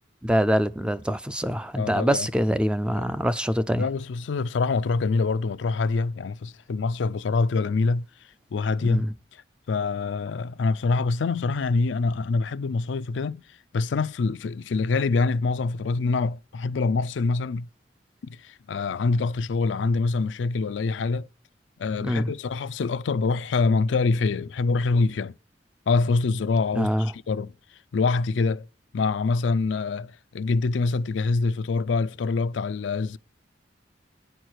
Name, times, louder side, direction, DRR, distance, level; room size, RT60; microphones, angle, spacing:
voice 1, 0.2-3.9 8.8-9.1 22.0-22.3 26.7-27.1, equal, 5° right, 0.4 m, -24 dB
voice 2, 1.8-2.3 3.8-8.1 8.5-9.1 9.7-13.4 13.7-17.7 18.3-21.3 21.8-25.3 25.9-27.5 27.9-28.6 28.9-33.2, left 4 dB, 80° left, 0.4 m, -25 dB
9.9 x 4.5 x 6.3 m
head